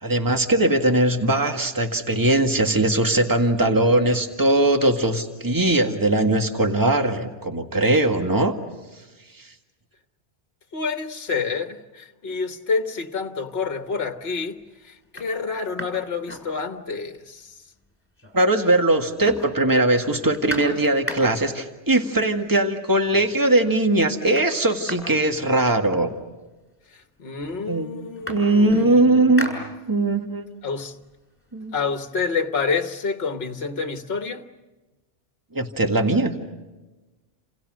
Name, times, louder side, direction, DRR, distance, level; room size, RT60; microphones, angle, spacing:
voice 1, 0.0-8.5 18.3-26.1 27.7-27.9 28.3-29.5 29.9-30.4 31.5-31.7 35.5-36.3, right 2 dB, 15° right, 1.9 m, -20 dB
voice 2, 10.7-14.6 14.8-17.6 26.9-29.7 30.6-31.0 31.7-34.4, left 5 dB, 65° left, 1.6 m, -28 dB
sound 1, 13.9-14.1 14.6-14.7 15.0-17.1 17.4-17.5 17.8-18.6 18.9-21.6 22.6-22.7 23.1-23.5 23.8-26.2 27.0-27.1 27.4-30.2 30.7-32.4, equal, 10° left, 6.5 m, -38 dB
29.5 x 28.5 x 6.3 m
omnidirectional pair, 1.2 m